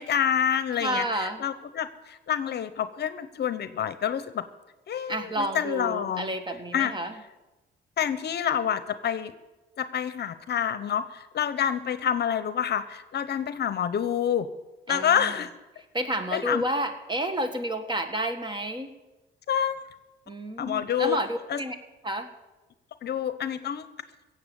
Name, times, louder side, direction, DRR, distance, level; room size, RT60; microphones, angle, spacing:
voice 1, 0.0-4.5 4.9-6.3 6.7-6.9 8.0-9.3 9.8-14.5 14.9-15.5 16.3-16.6 19.5-19.8 20.6-21.2 21.5-21.6 23.0-23.8, left 9 dB, 55° left, 13 dB, 0.8 m, -27 dB
voice 2, 0.8-1.4 5.1-7.2 14.9-15.4 15.9-18.9 20.3-21.8 22.0-22.3, right 1 dB, 25° right, 7 dB, 1.6 m, -30 dB
16.5 x 7.8 x 7.0 m, 1.1 s
cardioid pair, 90°, 20 cm